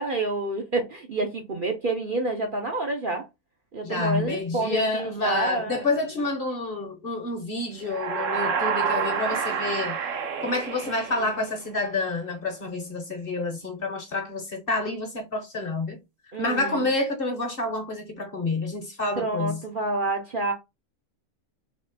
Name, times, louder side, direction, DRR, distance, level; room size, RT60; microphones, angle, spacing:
voice 1, 0.0-3.3 3.7-5.9 11.2-11.3 16.3-16.9 19.2-20.5, right 2 dB, 45° right, 0.8 m, -28 dB
voice 2, 3.8-10.0 10.4-16.0 16.4-19.6, left 2 dB, 45° left, 1.0 m, -28 dB
sound 1, 7.8-11.7, right 6 dB, 65° right, 1.1 m, -28 dB
3.6 x 3.1 x 4.0 m
omnidirectional pair, 1.5 m